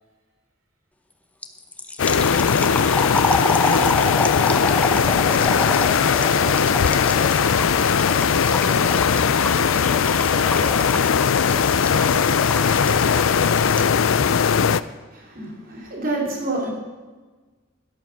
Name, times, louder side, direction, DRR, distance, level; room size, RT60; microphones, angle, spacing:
sound 1, 1.4-14.0, left 1 dB, 5° left, 0.7 m, -27 dB
sound 2, 2.0-14.8, left 6 dB, 80° left, 0.5 m, -19 dB
voice 1, 2.1-3.2 3.5-5.0 5.5-6.2 6.6-7.9 8.4-10.8 11.6-12.5 14.3-14.5, right 1 dB, 85° right, -1 dB, 2.7 m, -40 dB
voice 2, 15.1-16.7, right 2 dB, 45° right, -2 dB, 3.6 m, -28 dB
12.5 x 11.5 x 6.1 m, 1.3 s
head